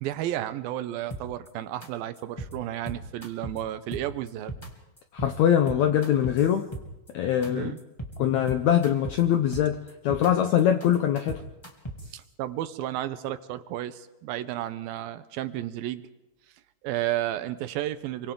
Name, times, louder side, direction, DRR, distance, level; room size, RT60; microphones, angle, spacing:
voice 1, 0.0-4.5 7.5-7.8 12.1-16.0 16.8-18.3, right 13 dB, 80° right, 2.5 m, -32 dB
sound 1, 1.1-1.5 1.8-1.9 2.2-2.5 2.9-3.6 3.9-4.7 5.0-5.3 5.7-7.1 7.4-7.5 7.8-8.1 8.5-9.2 9.5-10.3 10.6-12.1, right 1 dB, 10° left, 1.9 m, -37 dB
voice 2, 5.1-6.7 7.1-7.7 8.2-11.4, left 10 dB, 80° left, 1.6 m, -23 dB
28.5 x 24.0 x 3.8 m
omnidirectional pair, 4.3 m